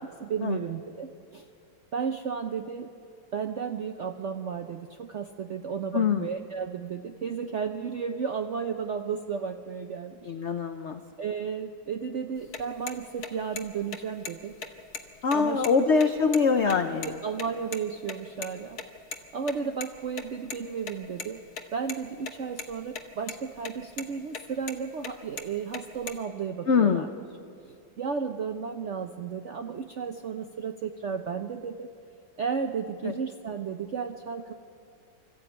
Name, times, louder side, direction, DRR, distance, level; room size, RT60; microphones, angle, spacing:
voice 1, 0.2-1.4 1.9-2.9 3.3-10.3 11.2-14.5 15.3-16.1 17.0-18.8 19.3-21.4 21.7-27.1 27.6-31.9 32.4-34.5, right 6 dB, 75° right, 6 dB, 0.6 m, -33 dB
voice 2, 5.9-6.3 10.2-11.0 15.2-17.1 26.7-27.1 33.0-33.1, left 5 dB, 70° left, 7 dB, 0.6 m, -24 dB
sound 1, 12.4-17.5 17.7-17.8 18.1-18.2 18.4-18.5 18.8-18.9 19.1-19.2 19.5-20.6 20.8-21.3 21.6-22.3 22.6-23.0 23.3-23.7 24.0-24.1 24.3-24.8 25.0-26.2, left 6 dB, 55° left, 1.6 m, -37 dB
24.5 x 13.5 x 8.8 m, 2.5 s
omnidirectional pair, 2.1 m